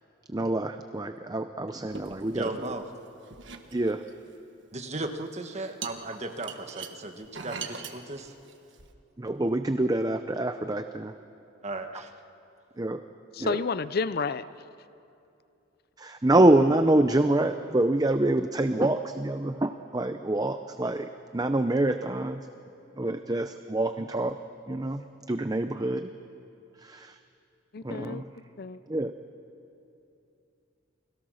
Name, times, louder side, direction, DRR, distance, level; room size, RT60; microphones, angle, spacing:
voice 1, 0.3-2.8 3.7-4.0 9.2-11.1 12.8-13.0 13.4-13.6 16.0-22.4 23.0-24.4 24.7-26.1 26.8-27.2 27.8-28.3 28.9-29.1, right 1 dB, 20° right, 8 dB, 0.6 m, -26 dB
sound 1, 1.9-2.9 3.2-4.3 5.0-5.2 5.8-8.9, right 5 dB, 65° right, 1.5 m, -41 dB
voice 2, 2.3-2.8 4.7-8.3 11.6-12.1, right 2 dB, 35° right, 5 dB, 1.4 m, -36 dB
voice 3, 13.3-14.5 27.7-28.2 28.6-28.8, left 4 dB, 50° left, 15 dB, 0.5 m, -30 dB
29.5 x 21.0 x 6.4 m, 2.7 s
head